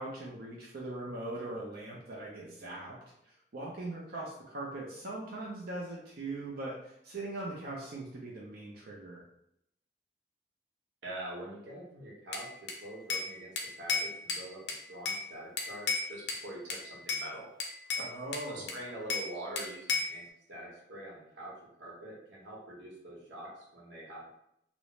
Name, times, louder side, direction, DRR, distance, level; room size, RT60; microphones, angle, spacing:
voice 1, 0.0-3.0 3.2-9.2 17.9-18.7, right 2 dB, 55° right, -4 dB, 0.5 m, -40 dB
voice 2, 11.0-13.5 13.8-14.6 14.9-17.5 18.5-20.2 20.5-24.3, right 1 dB, 90° right, -4 dB, 0.9 m, -44 dB
Bell / Glass, 12.3-13.3 13.6-15.2 15.6-16.4 16.7-17.3 17.6-19.3 19.6-20.2, left 4 dB, 70° left, 0.5 m, -34 dB
2.4 x 2.0 x 3.0 m, 0.77 s
head